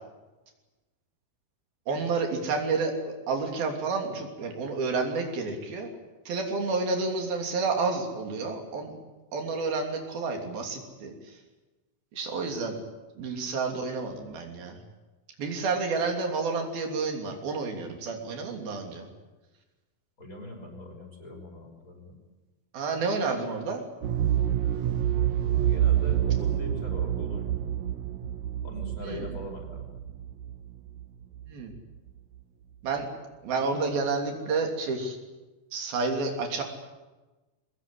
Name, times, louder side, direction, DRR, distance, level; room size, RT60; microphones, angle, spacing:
voice 1, 1.9-5.9 6.3-8.9 9.3-11.4 12.1-12.8 13.2-14.8 15.4-19.1 22.7-23.9 29.0-29.3 31.5-31.7 32.8-33.1 33.4-35.2 35.7-36.6, right 4 dB, 90° right, 3 dB, 4.9 m, -30 dB
voice 2, 20.2-22.1 25.5-27.7 28.6-30.0, left 1 dB, 20° left, 1 dB, 5.9 m, -41 dB
sound 1, 24.0-31.8 32.1-32.2, right 10 dB, 65° right, 1.9 m, -28 dB
22.5 x 20.0 x 10.0 m, 1.2 s
omnidirectional pair, 4.1 m